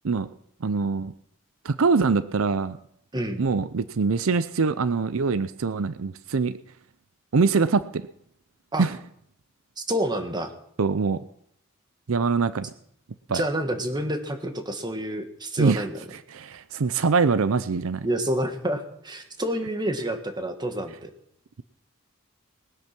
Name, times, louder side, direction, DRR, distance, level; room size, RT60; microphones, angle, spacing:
voice 1, 0.6-1.1 1.6-2.8 3.4-6.5 7.3-8.1 8.8-8.9 10.8-11.2 12.1-12.7 13.3-13.4 15.6-15.9 16.3-18.1, right 4 dB, 80° right, 14 dB, 0.6 m, -23 dB
voice 2, 9.8-10.5 13.3-16.0 18.0-21.1, right 1 dB, 20° right, 6 dB, 1.6 m, -28 dB
20.0 x 9.0 x 6.0 m, 0.71 s
head